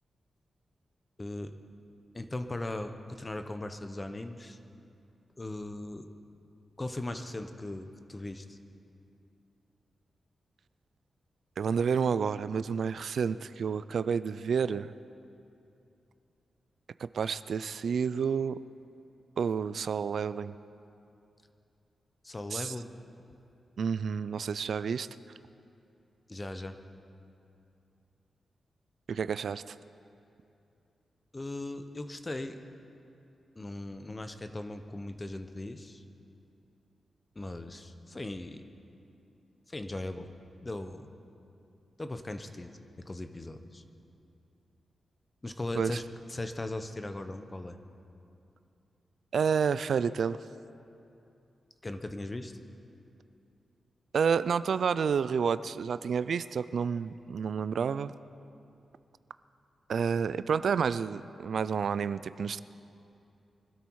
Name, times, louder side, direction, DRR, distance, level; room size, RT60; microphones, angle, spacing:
voice 1, 1.2-1.6 2.1-4.6 5.4-6.1 6.8-8.6 22.2-22.9 26.3-26.8 31.3-32.6 33.5-36.0 37.3-38.6 39.7-40.3 40.6-41.1 42.0-42.7 43.0-43.8 45.4-46.0 46.3-47.8 51.8-52.5, left 2 dB, 25° left, 8 dB, 1.0 m, -38 dB
voice 2, 11.6-14.9 17.0-18.6 19.4-20.5 22.5-22.7 23.8-25.1 29.1-29.8 45.8-46.0 49.3-50.4 54.1-58.1 59.9-62.6, right 6 dB, 70° right, 14 dB, 0.4 m, -29 dB
24.0 x 12.5 x 4.7 m, 2.7 s
cardioid pair, 95°, 0 cm